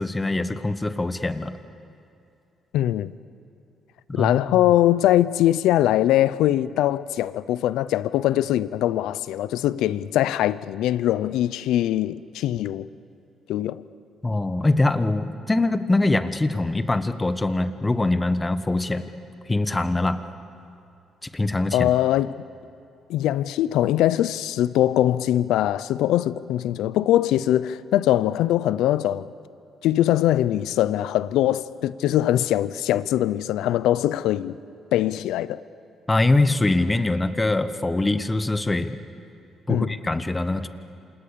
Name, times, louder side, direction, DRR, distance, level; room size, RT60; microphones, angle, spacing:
voice 1, 0.0-1.6 4.1-4.6 14.2-19.1 19.5-20.2 21.2-21.9 36.1-39.0 39.7-40.7, left 2 dB, 20° left, 1.3 m, -23 dB
voice 2, 2.7-3.1 4.1-12.9 13.5-13.8 21.7-22.3 23.1-29.3 29.8-34.6 34.9-35.6 39.7-39.9, left 13 dB, 90° left, 0.6 m, -22 dB
28.0 x 27.5 x 6.9 m
cardioid pair, 90°, 0 cm